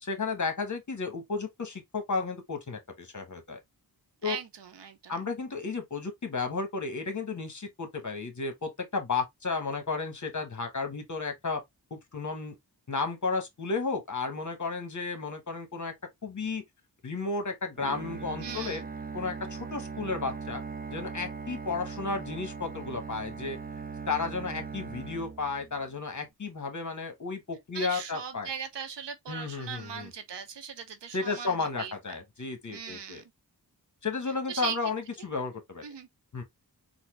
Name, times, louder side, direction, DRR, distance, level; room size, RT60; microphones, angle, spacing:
voice 1, 0.0-3.6 4.2-4.4 5.1-11.6 11.9-12.5 12.9-15.9 16.2-16.6 17.0-18.8 19.1-20.6 20.9-23.6 24.1-28.5 29.3-30.1 31.1-33.2 34.0-35.8 36.3-36.4, left 4 dB, 45° left, 1.1 m, -33 dB
voice 2, 4.2-5.3 18.4-18.9 27.7-31.9 32.7-33.2 34.5-34.8 35.8-36.1, right 7 dB, 80° right, 0.8 m, -39 dB
Bowed string instrument, 17.8-26.0, right 5 dB, 20° right, 0.5 m, -40 dB
4.1 x 2.1 x 3.0 m
wide cardioid pair, 80°, 41 cm